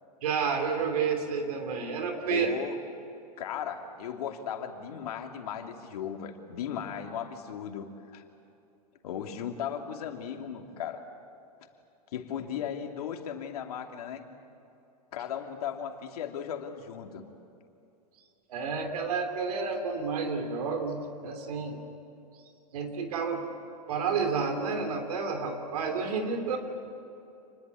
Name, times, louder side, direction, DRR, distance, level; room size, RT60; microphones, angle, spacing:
voice 1, 0.2-2.5 18.5-21.8 22.7-23.5 23.9-26.6, right 5 dB, 65° right, 5 dB, 3.3 m, -30 dB
voice 2, 2.3-2.8 3.4-8.2 9.0-11.0 12.1-14.2 15.1-17.2, left 8 dB, 65° left, 4 dB, 2.8 m, -36 dB
28.5 x 21.0 x 8.5 m, 2.8 s
hypercardioid pair, 105°, 20 cm